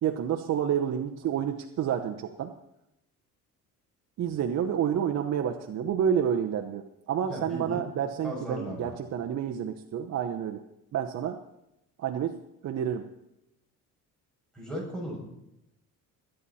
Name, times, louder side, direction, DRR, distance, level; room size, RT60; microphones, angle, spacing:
voice 1, 0.0-2.5 4.2-10.6 10.9-11.4 12.0-12.4 12.6-13.1, right 9 dB, 50° right, 5 dB, 0.9 m, -29 dB
voice 2, 7.2-7.9 8.2-8.9 14.5-15.2, equal, ahead, -5 dB, 6.9 m, -36 dB
22.0 x 9.1 x 4.3 m, 0.85 s
cardioid pair, 135°, 33 cm